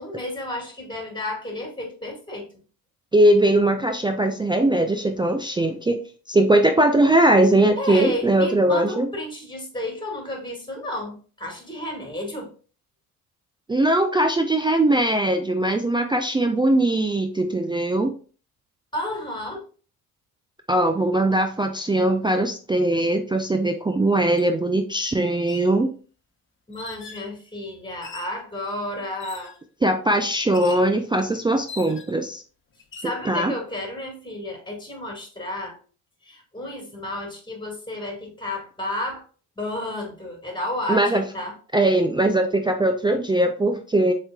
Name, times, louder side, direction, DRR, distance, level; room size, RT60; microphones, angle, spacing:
voice 1, 0.0-2.5 7.8-12.5 18.9-19.6 26.7-29.5 33.0-35.8 36.2-39.2 39.6-41.5, left 1 dB, 10° left, 2 dB, 2.2 m, -32 dB
voice 2, 3.1-6.0 6.3-9.1 13.7-18.1 20.7-25.9 29.8-32.4 33.3-33.5 40.9-41.2 41.7-44.1, right 1 dB, 10° right, 4 dB, 0.4 m, -20 dB
sound 1, 24.4-24.5 25.3-25.7 26.7-27.3 28.0-28.4 29.2-29.6 30.5-30.9 31.7-32.2 32.8-33.2, left 5 dB, 25° left, 0.9 m, -41 dB
7.0 x 3.2 x 2.3 m, 0.39 s
hypercardioid pair, 55°, 46 cm